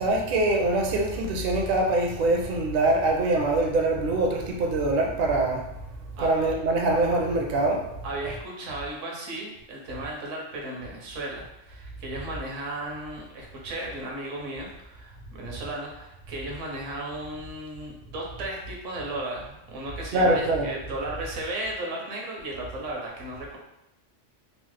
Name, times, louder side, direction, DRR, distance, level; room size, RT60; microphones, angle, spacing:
voice 1, 0.0-5.6 6.2-7.9 20.1-20.7, right 2 dB, 60° right, 1 dB, 0.6 m, -23 dB
voice 2, 8.0-23.6, right 1 dB, 80° right, -1 dB, 1.1 m, -35 dB
3.0 x 2.0 x 3.1 m, 0.86 s
omnidirectional pair, 1.3 m